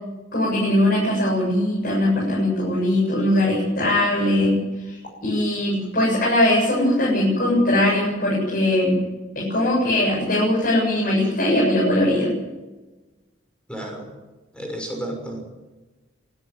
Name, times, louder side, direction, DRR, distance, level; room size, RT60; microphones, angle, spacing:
voice 1, 0.3-9.0 9.3-12.4, left 1 dB, 50° left, -5 dB, 7.9 m, -20 dB
voice 2, 13.7-14.1 14.5-15.5, right 1 dB, 5° left, 2 dB, 6.2 m, -32 dB
23.5 x 13.0 x 9.4 m, 1.1 s
head